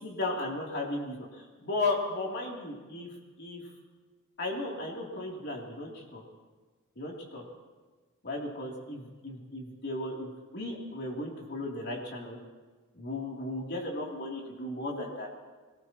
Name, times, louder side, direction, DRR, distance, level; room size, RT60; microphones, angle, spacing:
voice 1, 0.0-3.1 3.4-3.6 4.4-6.2 7.0-7.4 8.2-12.4 12.9-15.3, left 2 dB, 50° left, -2 dB, 3.1 m, -35 dB
25.5 x 19.0 x 3.0 m, 1.3 s
head